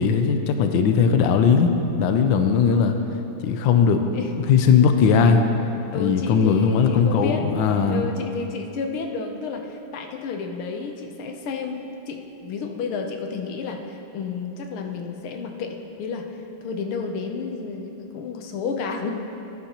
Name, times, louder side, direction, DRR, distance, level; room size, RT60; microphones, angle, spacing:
voice 1, 0.0-3.0 3.4-4.0 4.5-5.5 5.9-8.1, left 6 dB, 70° left, 6 dB, 1.3 m, -18 dB
voice 2, 5.9-7.5 7.9-16.3 16.6-19.1, left 5 dB, 90° left, 4 dB, 1.7 m, -31 dB
14.0 x 9.7 x 2.9 m, 2.9 s
omnidirectional pair, 2.3 m